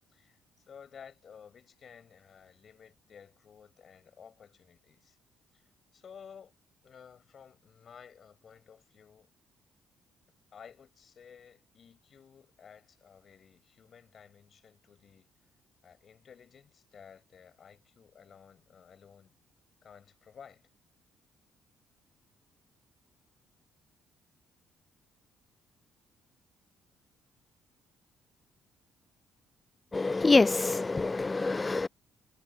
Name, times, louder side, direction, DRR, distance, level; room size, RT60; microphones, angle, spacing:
voice 1, 0.1-5.2 5.5-6.5 6.8-9.3 10.5-15.5 15.8-19.3 19.8-20.7, left 7 dB, 55° left, 6.6 m, -54 dB
voice 2, 29.9-31.9, left 3 dB, 25° left, 0.3 m, -25 dB
supercardioid pair, 65°, 0 cm